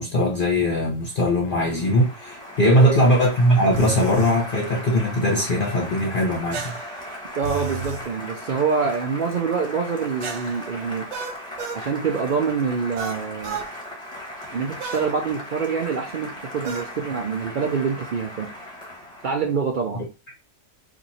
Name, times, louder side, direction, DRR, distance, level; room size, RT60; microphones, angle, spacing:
voice 1, 0.0-6.8, equal, 40° left, 0.8 m, -20 dB
Applause, 0.9-19.6, left 1 dB, 5° left, 1.0 m, -38 dB
voice 2, 2.6-2.9 7.4-11.1 11.7-13.6 14.5-18.5 19.2-20.0, right 5 dB, 85° right, 0.4 m, -26 dB
sound 1, 3.7-4.4 6.5-8.1 10.2-11.9 13.0-13.7 14.8-15.1 16.6-16.9, right 5 dB, 65° right, 1.0 m, -32 dB
2.9 x 2.6 x 4.0 m
omnidirectional pair, 1.5 m